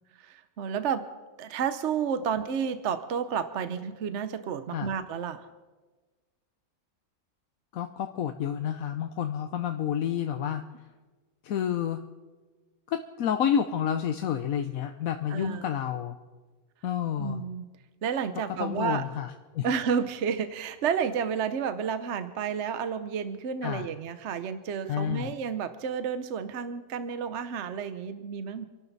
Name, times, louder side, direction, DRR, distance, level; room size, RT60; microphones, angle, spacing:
voice 1, 0.2-1.1 1.4-5.4 15.3-15.6 17.2-17.7 18.0-19.0 19.6-28.6, right 7 dB, 55° right, 11 dB, 1.0 m, -31 dB
voice 2, 7.7-10.6 11.4-12.0 12.9-16.2 16.8-17.4 18.6-19.7 23.6-23.9 24.9-25.3, left 9 dB, 70° left, 7 dB, 1.1 m, -29 dB
28.0 x 12.0 x 4.1 m, 1.3 s
omnidirectional pair, 1.6 m